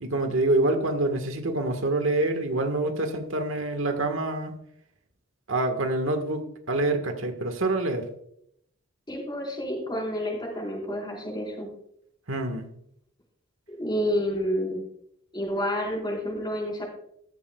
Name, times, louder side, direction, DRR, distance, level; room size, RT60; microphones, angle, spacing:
voice 1, 0.0-4.5 5.5-8.1 12.3-12.7, right 2 dB, 75° right, 6 dB, 1.5 m, -26 dB
voice 2, 9.1-11.7 13.7-14.8 15.3-16.9, equal, 25° left, -2 dB, 4.6 m, -29 dB
14.0 x 13.5 x 2.3 m, 0.71 s
head